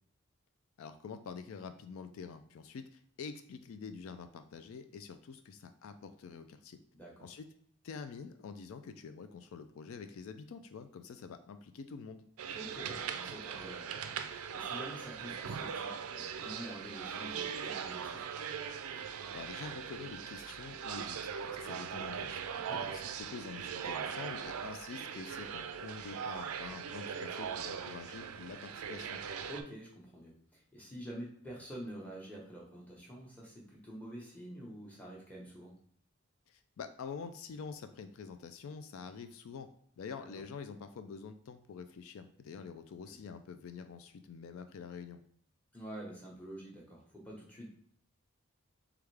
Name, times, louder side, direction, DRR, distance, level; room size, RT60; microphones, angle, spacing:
voice 1, 0.8-6.8 7.2-7.5 7.8-12.2 19.3-22.4 22.7-29.2 36.5-39.7 40.0-45.2, left 5 dB, 75° left, 9 dB, 0.3 m, -46 dB
voice 2, 6.9-7.3 12.5-13.9 14.5-18.3 22.5-22.9 29.5-35.7 40.3-40.4 43.1-43.2 45.7-47.7, right 1 dB, 5° left, -4 dB, 1.0 m, -47 dB
sound 1, 12.4-29.6, right 7 dB, 90° right, 0.4 m, -40 dB
3.5 x 3.4 x 3.3 m, 0.64 s
head